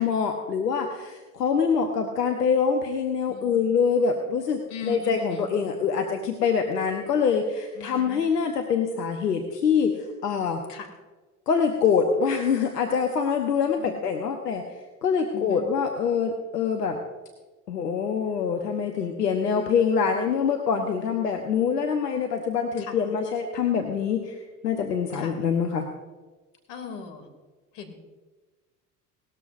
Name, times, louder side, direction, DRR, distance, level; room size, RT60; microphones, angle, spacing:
voice 1, 0.0-10.6 11.5-14.6 15.0-17.0 17.7-24.4 24.6-25.9, left 6 dB, 85° left, 4 dB, 1.1 m, -25 dB
voice 2, 4.7-5.4 7.8-8.2 10.7-10.9 13.8-13.9 15.3-15.7 18.9-19.2 22.8-22.9 25.2-25.3 26.7-27.3 27.7-27.9, left 5 dB, 60° left, 5 dB, 2.7 m, -39 dB
18.5 x 13.5 x 2.6 m, 1.2 s
hypercardioid pair, 70°, 47 cm